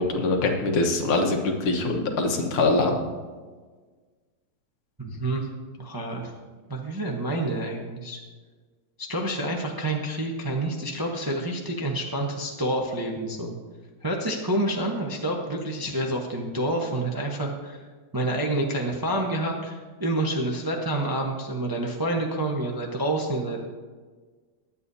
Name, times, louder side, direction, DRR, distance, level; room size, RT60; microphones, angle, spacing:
voice 1, 0.0-2.9, left 3 dB, 85° left, 2 dB, 2.2 m, -23 dB
voice 2, 5.0-5.5 5.8-6.3 6.7-8.2 9.0-13.6 14.0-17.8 18.1-23.7, right 1 dB, 20° right, 0 dB, 0.6 m, -28 dB
21.5 x 8.2 x 2.8 m, 1.5 s
omnidirectional pair, 2.3 m